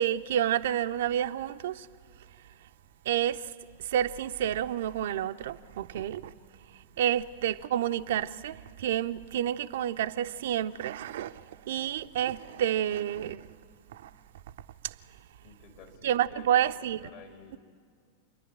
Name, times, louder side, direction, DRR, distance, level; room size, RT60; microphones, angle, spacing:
voice 1, 0.0-1.9 3.1-3.5 3.8-6.3 7.0-11.4 11.7-13.5 13.9-14.1 14.8-14.9 16.0-17.0, right 10 dB, 55° right, 0.5 m, -29 dB
voice 2, 15.4-16.7 17.0-17.6, left 5 dB, 50° left, 2.9 m, -52 dB
28.5 x 11.5 x 8.7 m
figure-of-eight pair, 90°, 0 cm